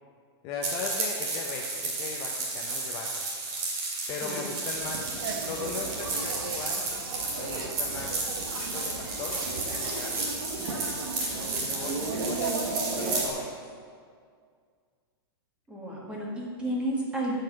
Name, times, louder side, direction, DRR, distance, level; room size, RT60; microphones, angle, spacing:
voice 1, 0.4-3.3 4.1-5.1 5.4-6.9 7.4-8.2 8.7-10.3 11.4-12.6 12.9-13.6, left 4 dB, 25° left, 0 dB, 0.7 m, -38 dB
sound 1, 0.6-13.3, right 3 dB, 40° right, 2.4 m, -33 dB
sound 2, 4.7-13.2, right 4 dB, 60° right, 1.4 m, -35 dB
sound 3, 7.8-13.4, left 2 dB, 10° left, 3.1 m, -42 dB
voice 2, 15.7-17.4, right 1 dB, 10° right, -4 dB, 1.8 m, -32 dB
9.1 x 5.6 x 7.8 m, 2.1 s
supercardioid pair, 165°, 13 cm